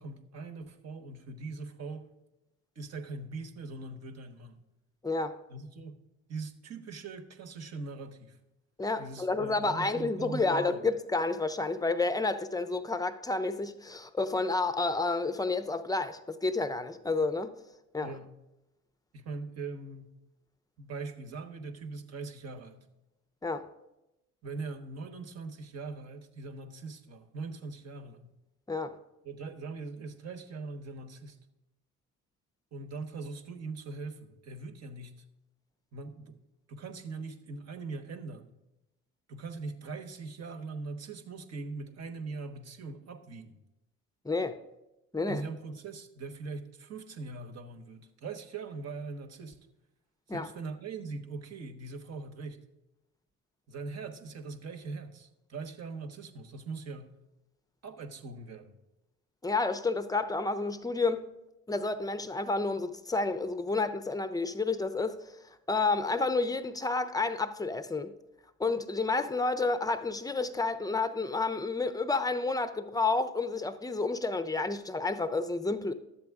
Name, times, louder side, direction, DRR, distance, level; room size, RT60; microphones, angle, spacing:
voice 1, 0.0-2.1 2.7-4.6 5.5-6.0 6.3-8.4 9.0-10.8 18.0-18.3 19.1-20.2 20.8-22.8 24.4-28.3 29.2-31.4 32.7-35.2 35.9-36.4 36.7-38.5 39.3-43.5 45.3-49.6 50.3-52.6 53.7-57.2 57.8-58.7, right 3 dB, 50° right, 1.2 m, -41 dB
voice 2, 5.0-5.4 8.8-17.5 17.9-18.1 23.4-23.7 28.7-29.0 44.2-44.6 45.1-45.4 50.3-50.5 59.4-61.3 61.7-65.2 65.7-68.1 68.6-75.9, left 3 dB, 10° left, 0.6 m, -30 dB
11.5 x 7.6 x 3.6 m
supercardioid pair, 65°, 34 cm